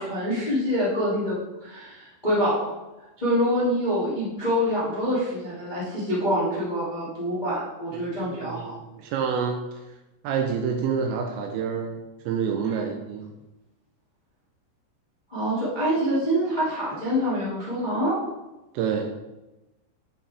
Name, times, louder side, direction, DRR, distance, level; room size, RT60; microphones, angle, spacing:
voice 1, 0.0-1.3 1.6-2.7 3.2-8.7 12.6-12.7 15.3-18.2, equal, 60° left, -8 dB, 0.4 m, -26 dB
voice 2, 7.9-9.8 10.2-12.0 12.3-13.3 18.7-19.1, right 6 dB, 80° right, 4 dB, 2.6 m, -28 dB
9.9 x 5.6 x 3.4 m, 1.0 s
omnidirectional pair, 5.6 m